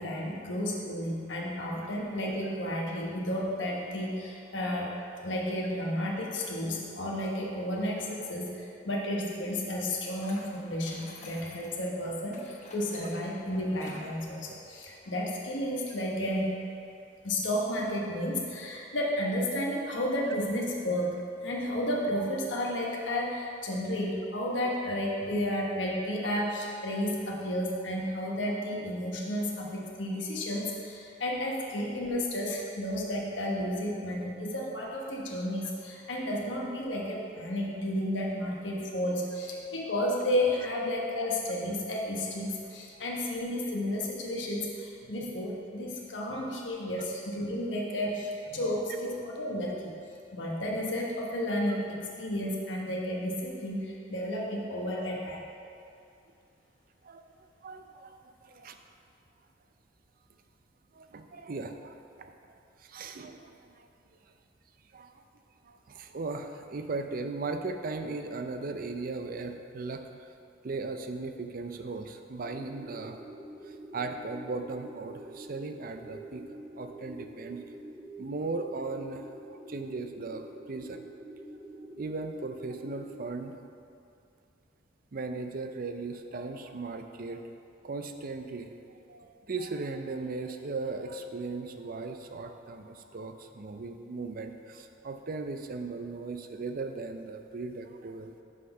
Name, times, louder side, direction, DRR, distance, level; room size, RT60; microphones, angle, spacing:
voice 1, 0.0-4.9 5.2-16.5 17.2-49.9 50.3-55.4, left 1 dB, 90° left, -2 dB, 1.2 m, -32 dB
sound 1, 10.2-11.8 12.3-14.1, left 2 dB, 40° left, 1.1 m, -50 dB
voice 2, 57.6-58.1 58.4-58.8 60.9-63.9 64.9-65.2 65.6-70.0 70.6-73.2 73.6-77.6 78.2-81.1 82.0-83.6 85.1-87.5 87.8-98.3, right 3 dB, 50° right, 7 dB, 0.5 m, -38 dB
sound 2, 72.4-83.3, right 1 dB, 5° right, 0.8 m, -46 dB
6.5 x 5.7 x 5.5 m, 2.5 s
head